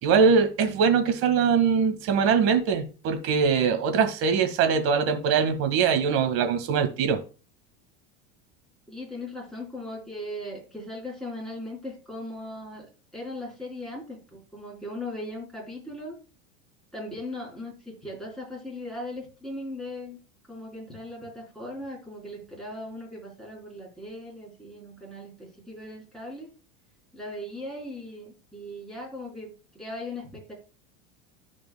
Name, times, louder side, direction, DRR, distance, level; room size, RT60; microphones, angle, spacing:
voice 1, 0.0-7.2, right 6 dB, 45° right, 6 dB, 1.8 m, -22 dB
voice 2, 8.9-12.9 13.1-16.1 16.9-20.2 20.5-26.5 27.1-30.5, left 1 dB, ahead, -4 dB, 4.2 m, -38 dB
14.5 x 5.1 x 2.2 m, 0.34 s
supercardioid pair, 145°, 32 cm